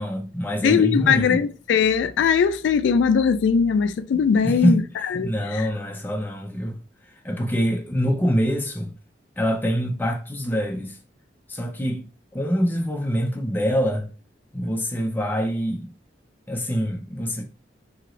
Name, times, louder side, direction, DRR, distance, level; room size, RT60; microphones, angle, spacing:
voice 1, 0.0-1.4 4.4-4.8 5.2-6.8 7.2-8.9 9.4-11.0 11.5-12.0 12.3-14.1 14.5-15.9 16.5-17.4, equal, 10° left, 0.4 m, -24 dB
voice 2, 0.6-4.8 5.1-5.3, left 6 dB, 90° left, 0.3 m, -20 dB
2.8 x 2.6 x 3.0 m
head